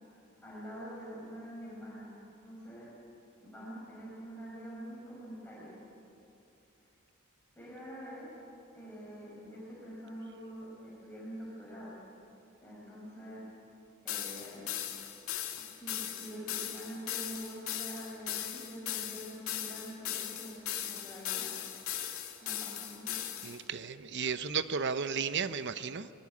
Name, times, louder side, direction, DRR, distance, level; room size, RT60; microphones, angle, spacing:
voice 1, 0.4-2.1 2.4-2.9 3.4-5.8 7.6-8.3 8.7-12.0 12.6-13.4 14.0-14.6 15.8-21.5 22.4-23.2, equal, 10° left, -7 dB, 5.8 m, -45 dB
sound 1, 14.1-23.6, left 11 dB, 80° left, 2.2 m, -38 dB
voice 2, 23.4-26.1, right 6 dB, 55° right, 12 dB, 0.9 m, -34 dB
23.0 x 20.5 x 8.6 m, 2.8 s
head